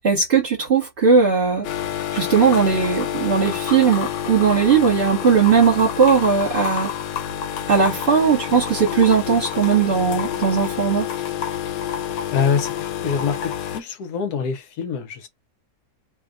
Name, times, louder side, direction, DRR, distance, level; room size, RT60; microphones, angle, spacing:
voice 1, 0.0-1.7 2.1-6.9 7.7-11.0, right 6 dB, 40° right, 1.4 m, -18 dB
sound 1, 1.6-13.8, left 10 dB, 80° left, 1.3 m, -28 dB
voice 2, 12.3-15.3, left 6 dB, 65° left, 1.3 m, -25 dB
3.1 x 2.3 x 3.7 m
omnidirectional pair, 1.9 m